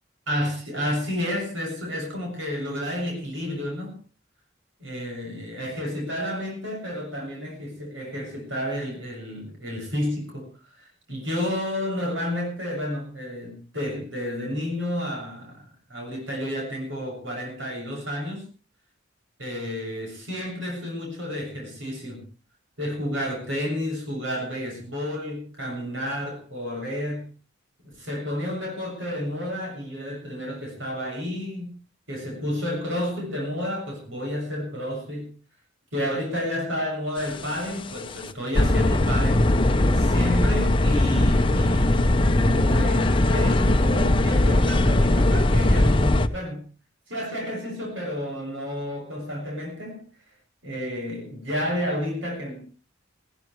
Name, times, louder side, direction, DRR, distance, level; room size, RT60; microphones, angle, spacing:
voice 1, 0.3-4.0 4.8-10.5 10.8-18.5 19.4-22.2 22.8-27.3 27.9-31.8 32.1-35.3 35.9-39.4 39.9-46.7 47.1-50.1 50.6-52.6, left 1 dB, 85° right, 7.0 m, -31 dB
sound 1, 37.3-37.7 38.1-38.2 38.5-46.3, left 1 dB, 25° left, 0.9 m, -20 dB
19.0 x 17.0 x 3.3 m
head